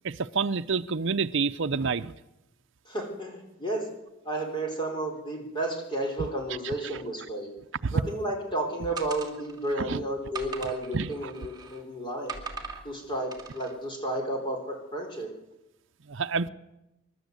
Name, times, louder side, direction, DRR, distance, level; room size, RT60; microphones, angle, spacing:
voice 1, 0.0-2.1 7.8-7.9 9.8-10.0 10.9-11.1 16.1-16.5, right 5 dB, 65° right, 0.6 m, -28 dB
voice 2, 2.9-3.9 4.2-7.5 7.9-12.4 12.8-15.3, right 1 dB, 25° left, 4.1 m, -32 dB
sound 1, 9.0-9.7 10.3-11.8 12.3-12.8 13.3-13.7, right 5 dB, 20° right, 2.8 m, -40 dB
28.0 x 12.5 x 8.0 m
head